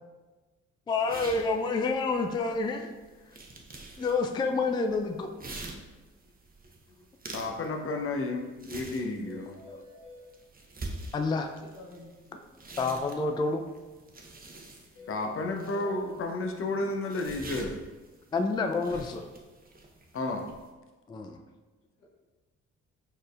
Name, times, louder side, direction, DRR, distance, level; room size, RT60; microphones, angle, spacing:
voice 1, 0.9-2.9 4.0-5.8 9.7-9.8 11.1-11.5 12.8-13.6 18.3-19.3 21.1-21.4, left 3 dB, 15° left, 5 dB, 0.3 m, -29 dB
sound 1, 0.9-20.7, right 2 dB, 25° right, 0.9 m, -47 dB
voice 2, 7.3-9.6 15.1-17.8 20.1-20.5, left 2 dB, 35° left, 4 dB, 0.7 m, -32 dB
sound 2, 8.0-8.1 8.4-8.5 8.8-8.9 9.3-10.2 15.0-15.9, left 2 dB, 55° left, 1.2 m, -50 dB
voice 3, 11.8-12.4 12.7-13.0 15.2-15.3 15.8-15.9 16.2-16.3 16.6-16.8, left 1 dB, 90° left, -4 dB, 0.8 m, -48 dB
4.9 x 4.3 x 2.4 m, 1.2 s
hypercardioid pair, 45°, 37 cm